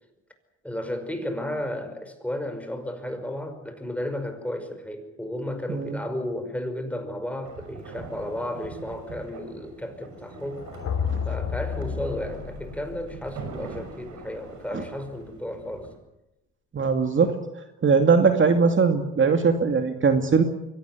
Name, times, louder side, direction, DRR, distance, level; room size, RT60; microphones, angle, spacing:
voice 1, 0.6-10.7 11.3-15.9, left 1 dB, 5° left, 6 dB, 5.6 m, -33 dB
sound 1, 7.4-16.0, right 4 dB, 75° right, 6.6 m, -42 dB
sound 2, 10.5-14.5, left 7 dB, 65° left, 3.6 m, -32 dB
voice 2, 16.7-17.3 17.8-20.4, right 5 dB, 40° right, 6 dB, 2.4 m, -20 dB
24.0 x 18.0 x 9.6 m, 0.93 s
cardioid pair, 90°, 30 cm